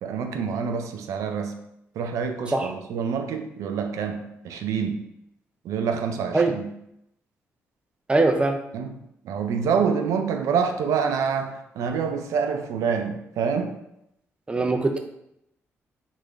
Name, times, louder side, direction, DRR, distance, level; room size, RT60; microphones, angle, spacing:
voice 1, 0.0-1.5 2.0-5.0 5.6-6.7 8.7-8.9 9.2-13.7 14.6-14.7, right 6 dB, 85° right, 6 dB, 0.4 m, -27 dB
voice 2, 8.1-8.6 14.5-15.0, right 3 dB, 20° right, 5 dB, 0.4 m, -21 dB
3.6 x 2.5 x 3.3 m, 0.81 s
cardioid pair, 90°, 5 cm